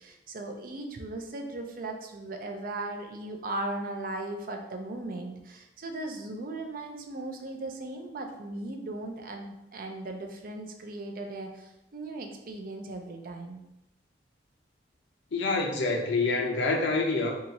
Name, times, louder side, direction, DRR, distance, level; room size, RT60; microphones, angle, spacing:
voice 1, 0.0-13.6, right 2 dB, 50° right, 3 dB, 0.5 m, -37 dB
voice 2, 15.3-17.4, left 3 dB, 85° left, 1 dB, 0.6 m, -27 dB
2.9 x 2.4 x 3.9 m, 0.89 s
head